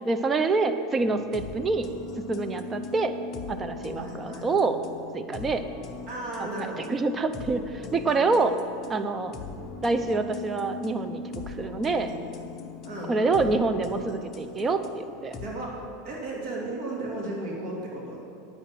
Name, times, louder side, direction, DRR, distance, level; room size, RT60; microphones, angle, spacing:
voice 1, 0.0-1.9 2.3-3.1 3.5-4.8 5.1-5.6 6.4-8.6 8.9-9.3 9.8-12.1 13.1-15.4, right 3 dB, 20° right, 8 dB, 0.6 m, -26 dB
sound 1, 1.0-15.5, left 4 dB, 30° left, 0.9 m, -40 dB
voice 2, 3.9-4.4 6.1-6.9 12.8-13.6 15.4-15.8 16.0-18.2, right 2 dB, 50° right, -3 dB, 2.7 m, -35 dB
10.0 x 7.7 x 5.8 m, 2.4 s
supercardioid pair, 130°, 0 cm